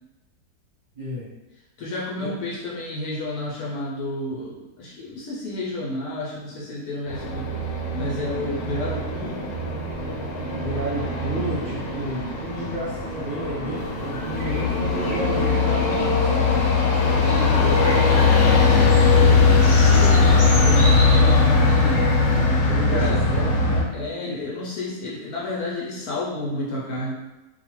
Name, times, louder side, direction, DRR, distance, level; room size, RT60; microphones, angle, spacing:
voice 1, 0.9-1.3 2.2-2.3 10.6-16.6 22.7-23.9, right 1 dB, 45° right, -12 dB, 0.7 m, -31 dB
voice 2, 1.8-7.5 7.9-9.4 17.2-19.5 19.7-22.1 22.9-23.2 23.9-27.1, left 2 dB, 65° left, -6 dB, 1.0 m, -31 dB
sound 1, 7.1-23.8, left 3 dB, 85° left, 1.3 m, -20 dB
sound 2, 13.8-22.4, equal, 40° left, 1.1 m, -35 dB
2.7 x 2.3 x 3.0 m, 1.0 s
omnidirectional pair, 1.9 m